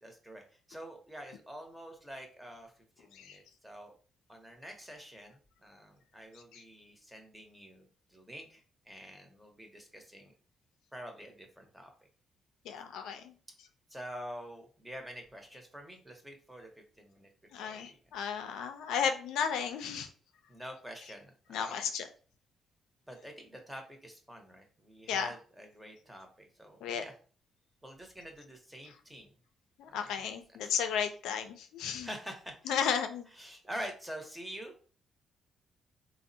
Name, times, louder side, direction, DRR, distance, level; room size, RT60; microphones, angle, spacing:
voice 1, 0.0-0.4 0.7-2.7 3.0-3.9 4.3-10.3 10.9-11.9 13.9-16.7 17.0-17.3 17.6-18.0 20.5-21.8 23.1-27.1 27.8-29.3 29.9-30.3 30.6-30.8 32.0-33.0 33.3-34.7, equal, 10° right, 3 dB, 0.7 m, -47 dB
voice 2, 12.7-13.3 17.5-20.1 21.5-22.0 25.1-25.3 26.8-27.0 29.8-32.1 32.7-33.3, left 7 dB, 85° left, 7 dB, 0.3 m, -34 dB
3.4 x 2.0 x 2.6 m, 0.41 s
cardioid pair, 90°, 0 cm